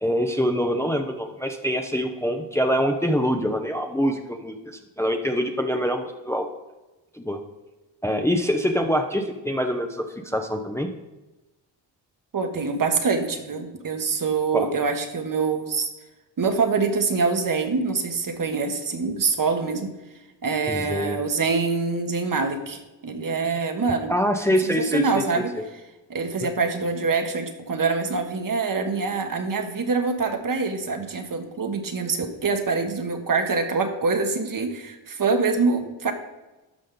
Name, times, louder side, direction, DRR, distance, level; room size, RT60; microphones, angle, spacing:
voice 1, 0.0-6.5 7.1-7.4 8.0-10.9 14.5-14.7 20.7-21.2 24.1-25.4, equal, 5° left, 4 dB, 0.8 m, -25 dB
voice 2, 12.3-15.9 16.4-19.9 20.4-24.1 24.6-25.5 26.1-36.1, right 4 dB, 45° right, 6 dB, 1.4 m, -25 dB
12.5 x 5.2 x 3.9 m, 1.1 s
cardioid pair, 65°, 46 cm